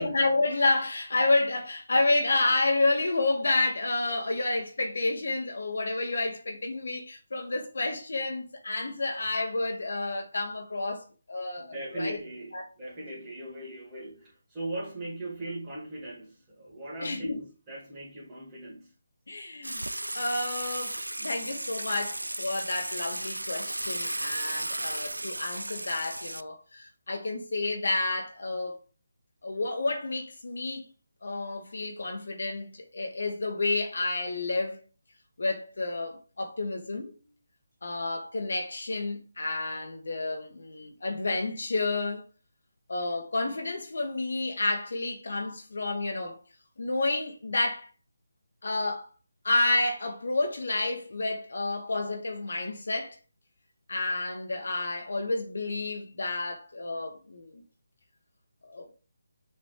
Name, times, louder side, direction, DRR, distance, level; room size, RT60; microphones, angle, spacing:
voice 1, 0.0-12.2 12.5-12.7 17.0-17.4 19.3-28.8 29.4-30.9 31.2-34.8 35.4-37.1 37.8-42.2 42.9-46.4 46.8-47.9 48.6-49.1 49.4-53.2 53.9-57.6 58.6-59.0, left 2 dB, 65° left, 1.8 m, -30 dB
voice 2, 11.6-18.9, right 1 dB, 20° right, 2.2 m, -39 dB
Water / Water tap faucet / Sink (filling or washing), 19.6-26.4, right 1 dB, 85° right, 0.4 m, -35 dB
7.1 x 3.9 x 3.4 m
figure-of-eight pair, 150°, 0 cm